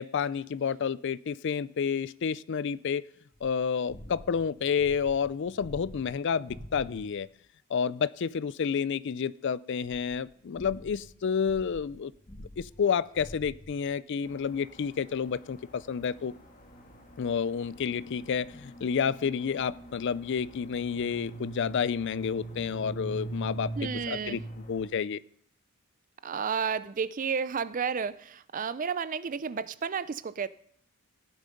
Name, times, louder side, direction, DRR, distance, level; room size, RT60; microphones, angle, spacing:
voice 1, 0.0-3.0 3.4-7.3 7.7-12.1 12.6-16.3 17.2-23.7 24.1-24.4 24.7-25.2, left 6 dB, 55° left, 19 dB, 0.4 m, -30 dB
sound 1, 3.3-7.3 7.9-8.0 9.8-14.0, left 1 dB, 20° left, 0.8 m, -48 dB
sound 2, 14.3-24.9, right 2 dB, 35° left, 1.9 m, -43 dB
voice 2, 23.7-24.4 26.2-30.5, right 6 dB, 35° right, 16 dB, 0.4 m, -32 dB
15.0 x 9.2 x 5.2 m, 0.69 s
head